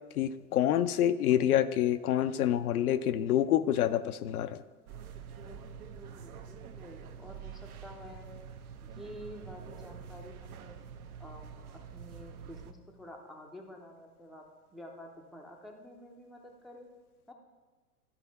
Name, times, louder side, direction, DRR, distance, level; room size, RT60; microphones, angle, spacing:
voice 1, 0.2-4.6, left 11 dB, 70° left, 11 dB, 0.6 m, -27 dB
sound 1, 4.9-12.7, right 7 dB, 70° right, 0.8 m, -46 dB
voice 2, 5.4-8.3 8.8-10.8 11.2-14.4 14.7-16.9 17.3-17.4, equal, ahead, 1 dB, 0.5 m, -50 dB
12.5 x 4.2 x 4.0 m, 1.3 s
hypercardioid pair, 100°, 46 cm